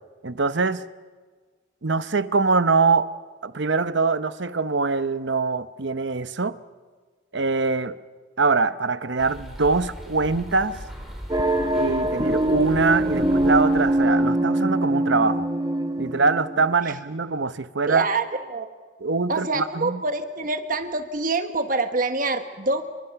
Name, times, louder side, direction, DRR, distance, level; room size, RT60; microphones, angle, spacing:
voice 1, 0.2-0.8 1.8-3.1 3.4-6.6 7.3-8.0 8.4-10.8 11.7-15.5 16.0-18.1 19.0-20.0, right 4 dB, 60° right, 0.9 m, -23 dB
sound 1, 9.2-14.3, equal, ahead, 4.5 m, -39 dB
sound 2, 11.3-16.7, right 1 dB, 20° right, 1.2 m, -23 dB
voice 2, 17.9-18.7 19.3-22.8, right 3 dB, 40° right, 1.4 m, -26 dB
28.5 x 24.0 x 5.9 m
head